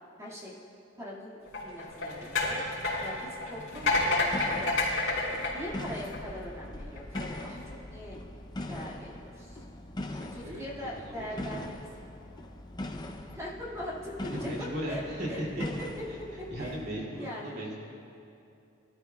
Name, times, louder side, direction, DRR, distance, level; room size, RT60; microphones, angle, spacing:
voice 1, 0.2-0.6 1.0-4.7 5.5-8.2 8.7-9.6 10.3-11.9 13.3-15.0 15.3-16.7 17.1-17.6, equal, 15° right, -5 dB, 2.0 m, -41 dB
sound 1, 1.5-6.4 7.0-7.2, left 2 dB, 75° left, 3.2 m, -29 dB
sound 2, 3.7-17.0, left 1 dB, 20° left, 0.6 m, -41 dB
voice 2, 10.1-10.7 11.0-11.6 14.3-15.6 16.1-16.2 16.5-17.8, equal, 55° right, -4 dB, 2.7 m, -37 dB
20.0 x 13.0 x 2.3 m, 2.7 s
head